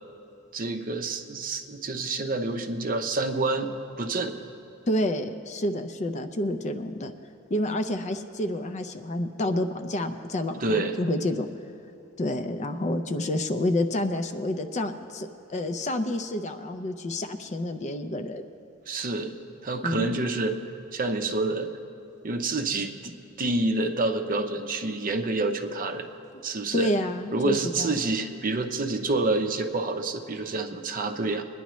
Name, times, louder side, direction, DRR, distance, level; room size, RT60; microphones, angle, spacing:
voice 1, 0.5-3.7 4.0-4.4 10.6-11.0 18.9-19.4 19.6-20.6 20.9-21.7 22.2-26.1 26.4-26.9 27.3-31.4, right 2 dB, 40° right, 5 dB, 0.7 m, -28 dB
voice 2, 4.9-7.1 7.5-11.5 12.2-18.4 19.8-20.1 26.3-26.4 26.7-27.9, left 1 dB, 35° left, 8 dB, 0.5 m, -29 dB
22.0 x 10.0 x 3.1 m, 2.9 s
head